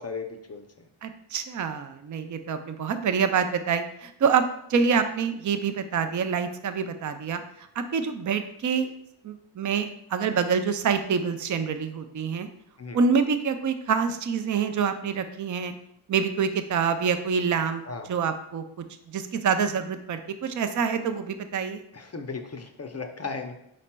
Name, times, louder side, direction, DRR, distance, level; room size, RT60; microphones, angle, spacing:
voice 1, 0.0-0.9 12.8-13.0 17.8-18.1 21.9-23.5, left 4 dB, 30° left, 6 dB, 0.5 m, -36 dB
voice 2, 1.0-4.4 4.7-7.4 7.8-8.9 9.2-12.5 12.9-15.7 16.1-17.8 18.1-18.6 19.1-21.8, right 6 dB, 40° right, 9 dB, 0.4 m, -26 dB
5.0 x 4.2 x 2.2 m, 0.77 s
wide cardioid pair, 80°, 49 cm